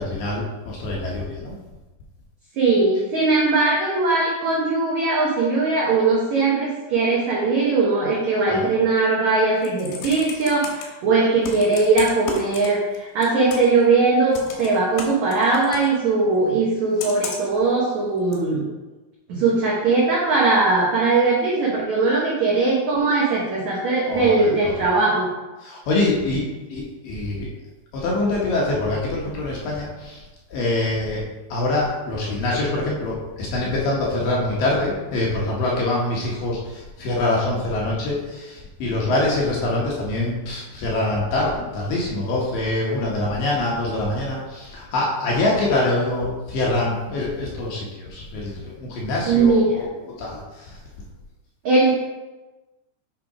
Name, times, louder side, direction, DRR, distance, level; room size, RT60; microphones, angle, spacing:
voice 1, 0.0-1.5 8.5-8.7 24.1-24.7 25.6-26.4 26.7-27.5 27.9-30.2 30.5-31.2 31.5-49.9 50.2-50.8, left 2 dB, 70° left, -4 dB, 2.3 m, -24 dB
voice 2, 2.6-18.6 19.3-25.3 49.3-49.8 51.6-51.9, right 3 dB, 80° right, -4 dB, 1.6 m, -20 dB
Computer keyboard, 9.4-10.8 11.4-13.0 13.2-13.8 14.3-15.9 17.0-17.6 18.3-18.4, left 5 dB, 85° left, 3.3 m, -33 dB
8.8 x 3.5 x 4.8 m, 1.2 s
omnidirectional pair, 4.9 m